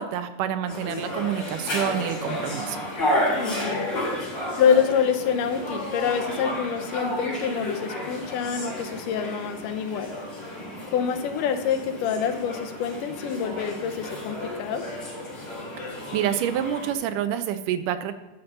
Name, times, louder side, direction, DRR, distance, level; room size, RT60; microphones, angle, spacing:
voice 1, 0.0-2.8 16.1-18.1, right 10 dB, 85° right, 11 dB, 2.2 m, -27 dB
sound 1, 0.7-16.9, left 1 dB, 35° left, 3.4 m, -32 dB
voice 2, 3.4-3.9 4.6-10.1 10.9-14.8, left 7 dB, 85° left, 7 dB, 2.4 m, -26 dB
10.5 x 5.8 x 5.4 m, 1.2 s
omnidirectional pair, 3.7 m